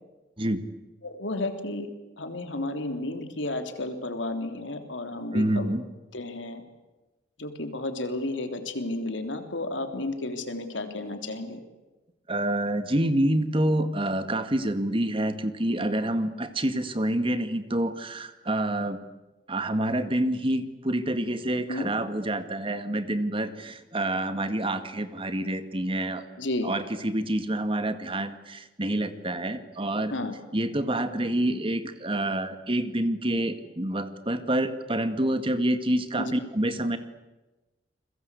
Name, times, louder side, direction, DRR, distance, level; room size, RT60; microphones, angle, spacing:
voice 1, 1.0-1.9 2.2-5.7 6.1-6.6 7.4-11.6 21.7-21.9 26.4-26.7 30.1-30.4 36.2-36.3, left 2 dB, 85° left, 7 dB, 3.4 m, -32 dB
voice 2, 5.3-5.8 12.3-19.0 19.5-26.2 26.6-30.1 30.5-37.0, right 1 dB, 30° right, 9 dB, 2.1 m, -27 dB
29.5 x 22.0 x 8.4 m, 1.1 s
head